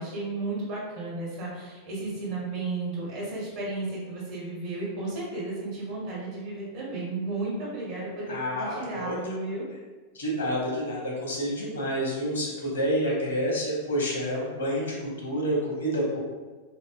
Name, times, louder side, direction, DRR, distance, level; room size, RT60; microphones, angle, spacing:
voice 1, 0.0-9.7, right 2 dB, 50° right, -7 dB, 0.9 m, -33 dB
voice 2, 8.3-9.2 10.1-16.2, equal, 70° left, -4 dB, 0.9 m, -28 dB
2.9 x 2.6 x 2.4 m, 1.3 s
figure-of-eight pair, 90°, 0 cm